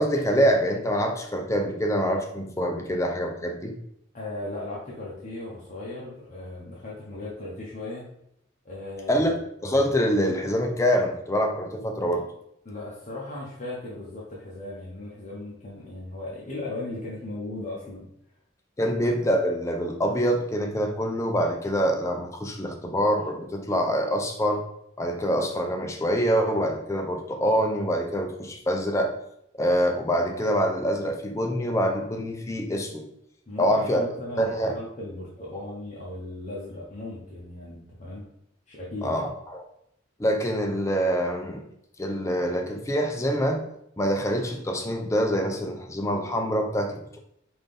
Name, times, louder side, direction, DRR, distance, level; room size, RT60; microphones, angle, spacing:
voice 1, 0.0-3.7 9.1-9.3 9.6-12.2 18.8-24.6 25.0-29.1 29.6-33.1 33.6-34.0 34.4-34.7 39.0-39.6 40.2-41.6 42.0-43.6 44.0-47.2, equal, 15° left, 3 dB, 0.4 m, -25 dB
voice 2, 4.1-8.1 8.6-9.2 12.6-18.1 33.5-38.2 38.7-39.2, left 2 dB, 40° left, -5 dB, 0.7 m, -37 dB
3.9 x 2.6 x 3.3 m, 0.75 s
head